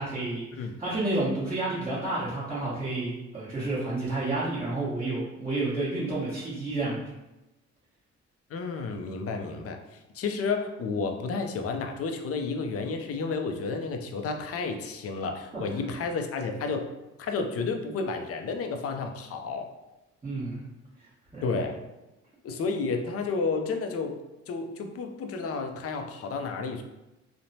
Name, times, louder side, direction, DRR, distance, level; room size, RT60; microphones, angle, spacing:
voice 1, 0.0-7.0 20.2-20.6 21.3-21.5, right 2 dB, 20° right, -12 dB, 1.2 m, -30 dB
voice 2, 8.5-16.9 17.2-19.7 21.4-21.8 22.4-24.2 24.5-26.8, left 4 dB, 50° left, 5 dB, 0.5 m, -31 dB
3.1 x 2.1 x 2.7 m, 0.98 s
cardioid pair, 90°, 30 cm